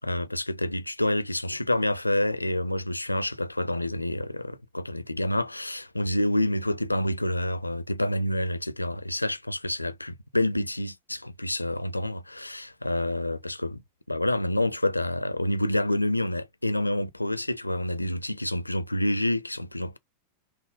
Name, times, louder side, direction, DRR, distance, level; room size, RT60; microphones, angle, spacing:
voice 1, 0.0-13.8 14.1-20.0, left 1 dB, 85° left, 0.4 m, -28 dB
5.9 x 2.0 x 3.6 m
figure-of-eight pair, 90°, 0 cm